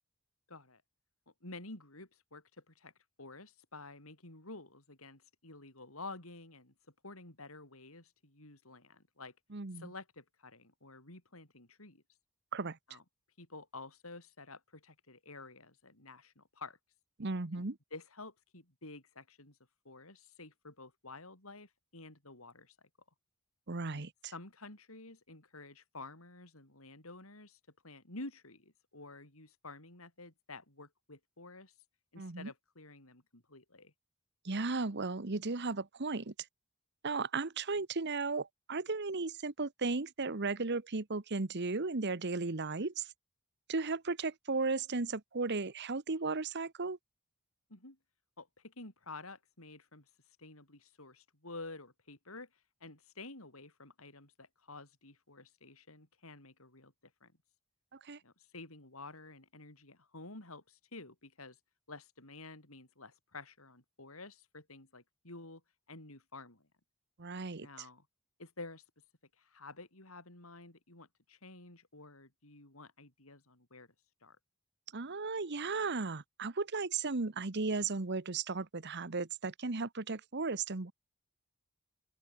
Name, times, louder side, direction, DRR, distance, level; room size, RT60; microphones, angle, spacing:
voice 1, 0.5-0.8 1.4-2.9 3.2-6.7 7.0-9.3 9.7-12.0 12.9-13.0 13.4-16.8 17.5-19.6 19.8-22.7 23.9-24.0 24.3-31.7 32.1-33.9 47.7-48.0 48.4-50.1 50.4-52.5 52.8-57.3 58.2-61.6 61.9-65.6 65.9-66.7 67.6-68.0 68.4-68.8 69.4-73.9 74.2-74.4, left 3 dB, 85° left, 6.7 m, -51 dB
voice 2, 9.5-9.9 12.5-12.8 17.2-17.8 23.7-24.1 32.2-32.5 34.4-36.3 37.0-43.1 43.7-47.0 57.9-58.2 67.2-67.7 74.9-80.9, right 3 dB, 55° right, 1.2 m, -35 dB
open air
head